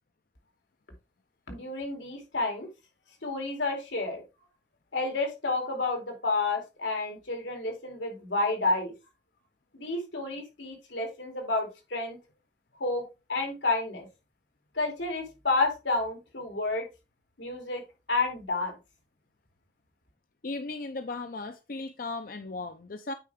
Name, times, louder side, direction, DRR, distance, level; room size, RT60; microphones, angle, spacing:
voice 1, 1.5-2.7 3.2-4.2 4.9-8.9 9.7-12.2 12.8-14.1 14.7-16.9 17.4-18.7, left 3 dB, 90° left, 2.8 m, -30 dB
voice 2, 20.4-23.1, left 3 dB, 50° left, 0.5 m, -36 dB
8.8 x 4.7 x 3.4 m
head